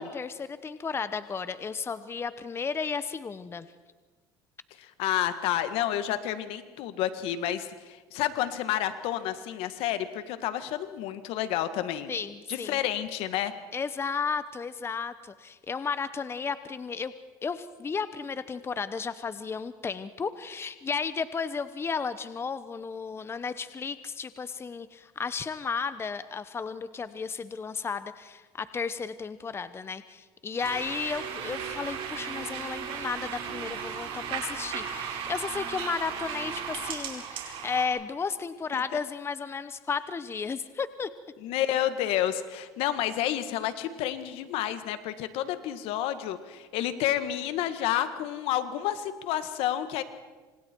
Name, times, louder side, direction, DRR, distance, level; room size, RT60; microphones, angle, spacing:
voice 1, 0.0-3.7 12.1-12.8 13.7-17.1 17.4-41.1, left 5 dB, 25° left, 13 dB, 0.9 m, -33 dB
voice 2, 4.8-12.1 12.5-13.5 38.7-38.8 41.4-50.0, left 12 dB, 70° left, 11 dB, 1.8 m, -30 dB
sound 1, 30.6-37.9, right 7 dB, 60° right, 4.9 m, -36 dB
28.0 x 26.0 x 4.6 m, 1.3 s
supercardioid pair, 100°, 10 cm